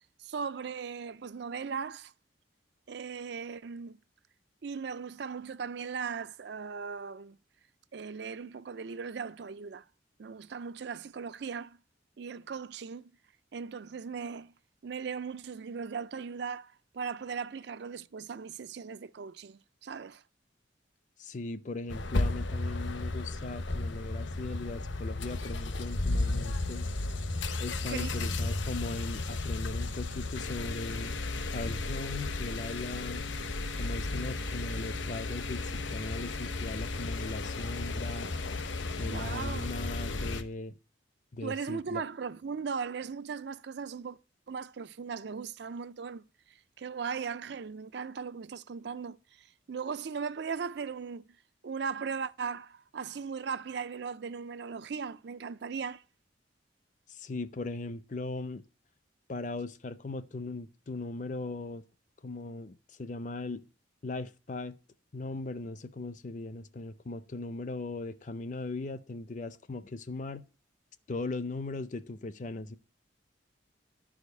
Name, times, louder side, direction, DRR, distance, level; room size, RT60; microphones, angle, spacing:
voice 1, 0.2-2.1 2.9-4.0 4.6-7.4 7.9-9.9 10.2-11.8 12.2-13.1 13.5-14.5 14.8-20.2 27.9-28.5 39.0-39.7 41.4-44.2 44.5-51.2 51.6-56.0, right 6 dB, 60° right, 0.4 m, -38 dB
voice 2, 21.2-26.9 27.6-31.1 31.5-33.2 33.7-38.3 39.0-40.7 41.3-42.0 57.1-58.6 59.3-61.8 62.2-63.6 64.0-64.7 65.1-70.4 71.1-72.8, left 2 dB, 40° left, 0.5 m, -39 dB
sound 1, 21.9-40.4, left 2 dB, 80° left, 1.0 m, -34 dB
11.5 x 5.0 x 8.1 m
head